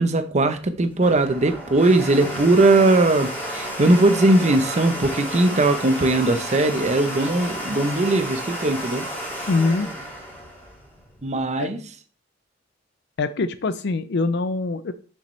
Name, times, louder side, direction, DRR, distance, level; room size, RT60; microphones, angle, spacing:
voice 1, 0.0-9.1 11.2-11.8, right 2 dB, 35° right, 0.8 m, -19 dB
Domestic sounds home sounds, 0.6-11.3, equal, 10° left, 2.3 m, -32 dB
voice 2, 9.5-9.9 11.6-11.7 13.2-14.9, left 3 dB, 60° left, 0.5 m, -23 dB
6.6 x 6.1 x 3.2 m
head